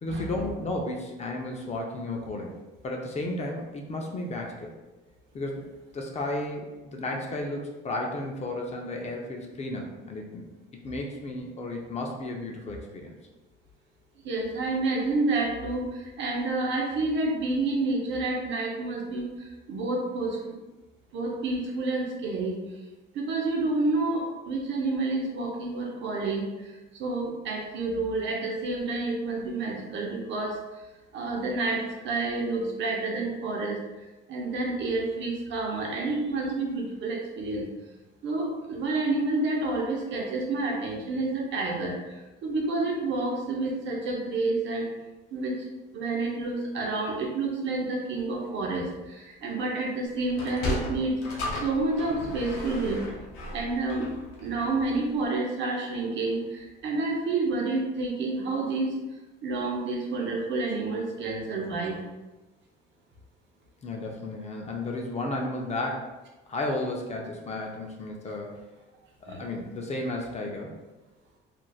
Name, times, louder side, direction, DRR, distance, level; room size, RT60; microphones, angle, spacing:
voice 1, 0.0-2.5 2.8-4.7 5.3-5.6 5.9-10.4 10.8-13.1 63.8-66.1 66.5-68.6 69.3-70.7, left 2 dB, 30° left, 1 dB, 0.5 m, -33 dB
voice 2, 14.2-19.3 19.7-20.6 21.1-22.6 23.1-26.5 27.0-30.5 31.1-33.8 34.3-37.6 38.2-42.0 42.4-44.9 45.3-45.6 45.9-51.1 51.6-53.0 53.5-54.1 54.4-58.9 59.4-62.0 69.3-69.4, right 3 dB, 60° right, -1 dB, 0.7 m, -29 dB
Sliding door, 50.3-54.9, left 2 dB, 85° left, 0.7 m, -35 dB
3.1 x 2.5 x 2.3 m, 1.1 s
cardioid pair, 110°, 21 cm